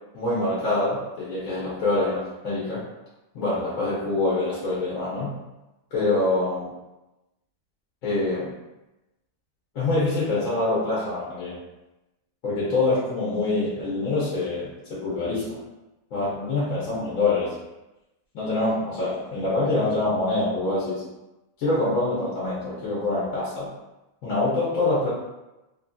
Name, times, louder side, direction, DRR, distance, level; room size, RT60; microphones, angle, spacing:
voice 1, 0.1-2.9 3.3-5.3 5.9-6.7 8.0-8.5 9.7-11.6 12.4-15.6 16.1-17.5 18.3-21.0 21.6-23.7 24.2-25.1, left 2 dB, 75° left, -8 dB, 1.1 m, -25 dB
2.8 x 2.5 x 2.2 m, 0.99 s
omnidirectional pair, 1.5 m